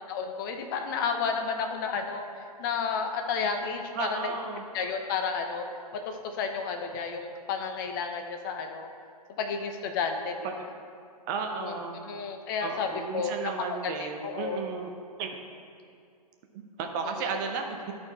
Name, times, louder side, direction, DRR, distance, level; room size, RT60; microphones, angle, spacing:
voice 1, 0.1-4.3 4.7-5.7 5.9-8.9 9.4-10.6 11.6-11.8 12.1-14.6 17.0-17.4, left 5 dB, 30° left, 5 dB, 0.7 m, -32 dB
voice 2, 3.9-4.6 10.4-10.5 11.3-12.0 12.6-14.9 15.2-15.4 16.5-17.9, right 5 dB, 30° right, 3 dB, 0.8 m, -34 dB
12.0 x 4.4 x 4.2 m, 2.3 s
figure-of-eight pair, 125°, 21 cm